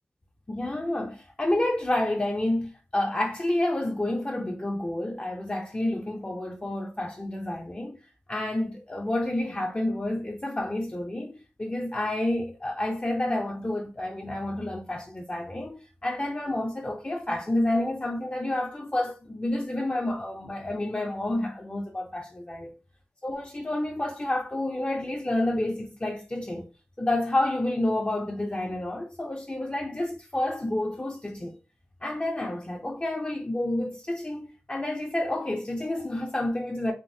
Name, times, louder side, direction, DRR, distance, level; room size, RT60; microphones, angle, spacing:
voice 1, 0.5-8.0 8.3-22.7 23.2-26.7 27.0-31.6 32.0-36.9, left 1 dB, 25° left, 0.6 m, -29 dB
3.6 x 2.6 x 2.6 m
wide cardioid pair, 75°, 5 cm